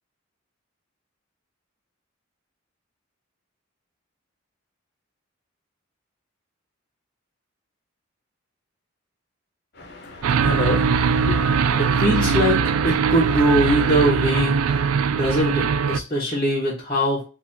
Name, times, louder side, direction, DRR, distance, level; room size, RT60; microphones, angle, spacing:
voice 1, 9.8-12.5 12.8-12.9 14.7-14.9, left 2 dB, 55° left, 1.0 m, -32 dB
sound 1, 10.2-16.0, right 6 dB, 85° right, 0.3 m, -21 dB
voice 2, 11.8-14.6 15.1-17.2, equal, 25° left, 1.1 m, -22 dB
4.0 x 2.7 x 2.7 m
head